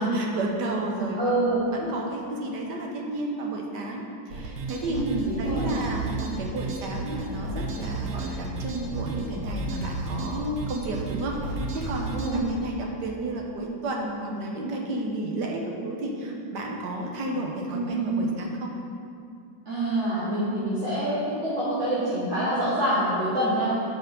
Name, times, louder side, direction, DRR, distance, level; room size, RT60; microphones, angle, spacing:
voice 1, 0.0-1.4 1.7-5.0 5.4-18.7, right 1 dB, 80° right, 0 dB, 1.6 m, -32 dB
voice 2, 1.2-1.6 4.9-5.7 12.1-12.4 17.7-18.2 19.6-23.7, right 1 dB, 45° right, -11 dB, 1.8 m, -26 dB
sound 1, 4.3-12.4, right 3 dB, 65° right, 1.3 m, -33 dB
7.6 x 5.0 x 5.2 m, 2.4 s
omnidirectional pair, 1.8 m